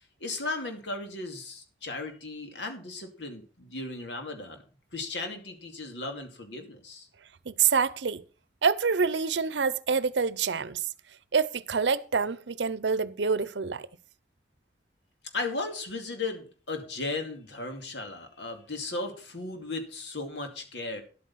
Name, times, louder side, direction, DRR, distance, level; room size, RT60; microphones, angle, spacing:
voice 1, 0.2-4.6 4.9-7.1 15.3-21.0, left 3 dB, 80° left, 2.5 m, -36 dB
voice 2, 7.5-8.2 8.6-10.8 11.3-13.9, right 5 dB, 80° right, 0.7 m, -26 dB
11.0 x 8.5 x 5.7 m
head